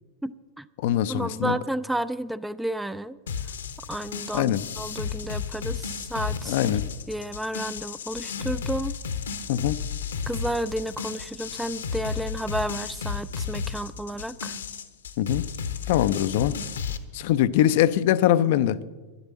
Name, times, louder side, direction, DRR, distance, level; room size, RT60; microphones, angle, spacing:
voice 1, 0.2-0.7 1.1-3.2 3.9-6.6 7.1-9.0 10.3-14.6, right 1 dB, 5° right, 0.4 m, -31 dB
voice 2, 0.8-1.6 4.3-4.6 6.5-6.8 9.5-9.8 15.2-15.5 15.9-16.6 17.1-18.8, left 12 dB, 50° left, 0.5 m, -22 dB
sound 1, 3.3-17.0, left 6 dB, 65° left, 0.9 m, -33 dB
11.0 x 11.0 x 7.4 m
figure-of-eight pair, 90°, 0 cm